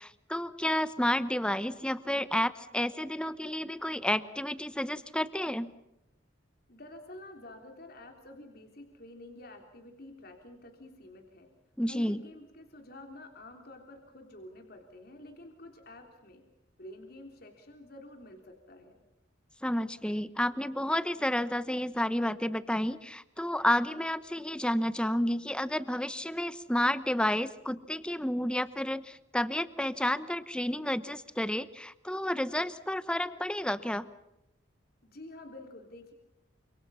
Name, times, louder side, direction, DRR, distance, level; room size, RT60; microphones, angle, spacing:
voice 1, 0.0-5.7 11.8-12.2 19.6-34.1, left 1 dB, 5° left, 13 dB, 1.0 m, -31 dB
voice 2, 6.7-11.5 11.9-16.4 16.8-19.0 35.0-36.1, left 1 dB, 50° left, 4 dB, 3.4 m, -49 dB
29.0 x 26.5 x 5.6 m, 0.89 s
head